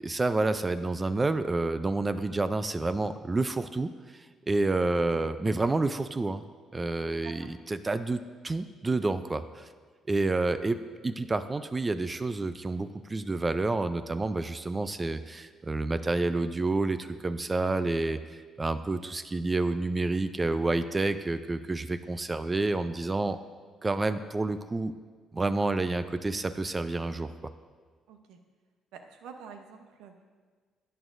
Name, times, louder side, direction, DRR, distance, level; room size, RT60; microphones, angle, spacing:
voice 1, 0.0-3.9 4.5-6.4 6.7-9.6 10.1-18.2 18.6-23.4 23.8-24.9 25.3-27.3, right 2 dB, 25° right, 12 dB, 0.4 m, -29 dB
voice 2, 4.9-5.2 7.2-7.5 28.1-28.4 28.9-30.2, right 6 dB, 85° right, 6 dB, 0.8 m, -48 dB
11.0 x 9.1 x 2.6 m, 1.5 s
supercardioid pair, 70°, 0 cm